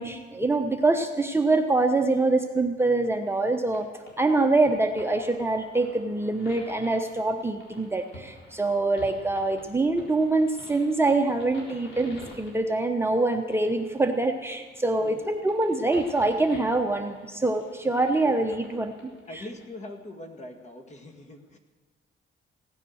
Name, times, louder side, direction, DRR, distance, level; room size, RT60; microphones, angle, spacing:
voice 1, 0.0-3.9 4.2-18.9 19.3-19.4, right 2 dB, 10° right, 4 dB, 1.0 m, -25 dB
sound 1, 2.9-19.7, left 2 dB, 70° left, 3.9 m, -50 dB
voice 2, 19.3-21.6, left 1 dB, 35° left, 5 dB, 1.9 m, -41 dB
16.5 x 9.8 x 6.4 m, 1.4 s
cardioid pair, 90°, 20 cm